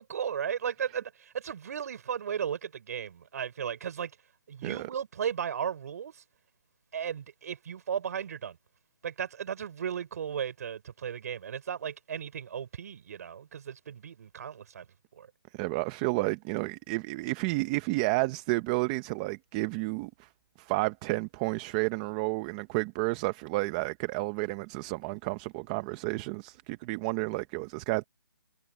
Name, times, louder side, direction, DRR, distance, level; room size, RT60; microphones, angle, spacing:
voice 1, 0.0-4.1 4.5-6.2 6.9-8.6 9.0-14.8 15.2-15.3, right 8 dB, 45° right, 5.1 m, -35 dB
voice 2, 15.5-20.3 20.6-28.0, right 23 dB, 15° right, 0.9 m, -31 dB
hypercardioid pair, 165°, 12 cm